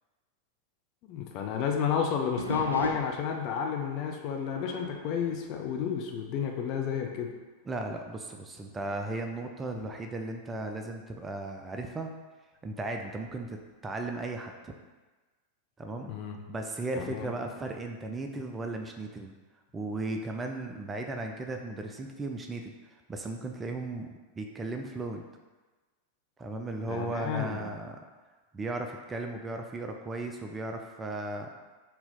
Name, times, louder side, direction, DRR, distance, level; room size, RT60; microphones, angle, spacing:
voice 1, 1.0-7.3 16.1-16.4 17.0-17.3 26.9-27.7, left 7 dB, 40° left, 2 dB, 0.5 m, -31 dB
sound 1, 2.4-6.5 6.8-7.2 7.8-7.9 8.6-11.3 13.2-13.7, equal, 85° right, 0.4 m, -42 dB
voice 2, 7.7-12.1 12.6-14.7 15.8-16.1 16.5-19.3 19.7-22.7 23.1-25.2 26.4-28.0 28.5-31.5, right 2 dB, 15° right, 3 dB, 0.4 m, -36 dB
4.0 x 2.8 x 3.7 m, 1.3 s
figure-of-eight pair, 90°, 0 cm